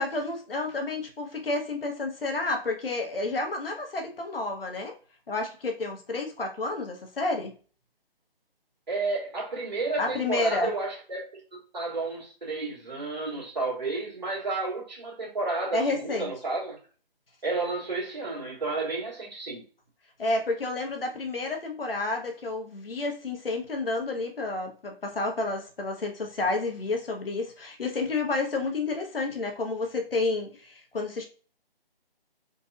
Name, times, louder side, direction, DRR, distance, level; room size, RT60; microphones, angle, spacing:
voice 1, 0.0-4.9 5.3-7.5 10.0-10.7 15.7-16.3 20.2-31.2, left 3 dB, 70° left, 0.9 m, -30 dB
voice 2, 8.9-11.2 11.5-16.8 17.4-19.6, right 3 dB, 45° right, 1.7 m, -31 dB
4.0 x 2.5 x 2.4 m
figure-of-eight pair, 150°, 30 cm